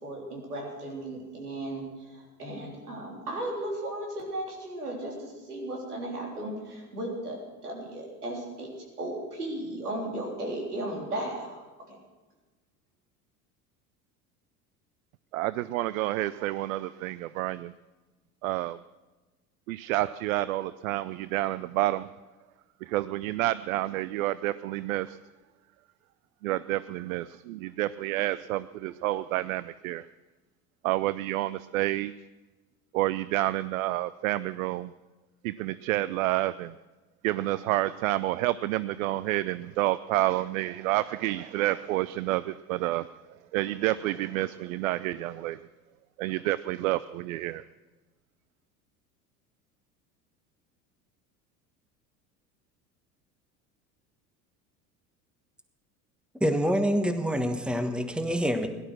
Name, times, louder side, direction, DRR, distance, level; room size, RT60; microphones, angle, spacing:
voice 1, 0.0-8.7 9.0-12.0, right 1 dB, 85° right, -1 dB, 3.7 m, -36 dB
voice 2, 15.3-17.7 18.4-18.8 19.7-22.1 22.8-25.2 26.4-30.0 30.8-32.1 32.9-34.9 35.4-36.7 37.2-43.1 43.5-45.6 46.2-47.6, right 16 dB, 65° right, 17 dB, 0.5 m, -29 dB
voice 3, 56.4-58.7, equal, ahead, 8 dB, 1.3 m, -26 dB
17.0 x 12.0 x 6.1 m, 1.2 s
figure-of-eight pair, 75°, 44 cm